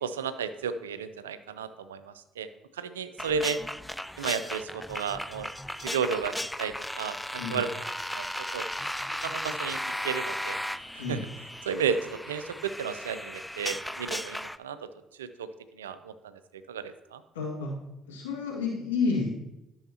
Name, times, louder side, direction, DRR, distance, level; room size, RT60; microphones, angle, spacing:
voice 1, 0.0-2.5 2.7-3.6 4.2-5.5 5.8-7.7 8.1-8.3 8.5-8.6 9.2-10.6 10.9-11.2 11.6-14.8 15.2-15.5 15.8-16.3 16.7-17.2, right 6 dB, 85° right, 12 dB, 0.4 m, -33 dB
sound 1, 3.2-14.6, left 1 dB, 5° left, 0.3 m, -36 dB
voice 2, 17.3-17.8 18.1-19.3, left 4 dB, 85° left, -3 dB, 1.8 m, -30 dB
12.5 x 6.2 x 2.8 m, 0.92 s
hypercardioid pair, 50°, 0 cm